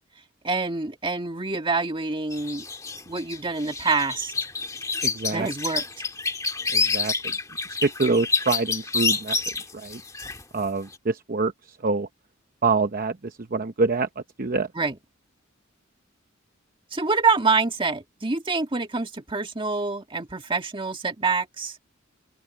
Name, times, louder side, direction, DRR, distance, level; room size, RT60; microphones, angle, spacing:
voice 1, 0.4-2.7 3.1-4.3 5.3-6.1 14.8-15.0 16.9-21.8, right 4 dB, 25° right, 1.8 m, -26 dB
sound 1, 2.3-10.6 10.9-11.0, left 4 dB, 15° left, 1.7 m, -28 dB
voice 2, 5.0-5.5 6.7-7.3 7.8-9.4 9.7-10.0 10.5-11.5 11.8-12.1 12.6-14.1 14.4-14.7, right 3 dB, 45° right, 0.8 m, -25 dB
open air
head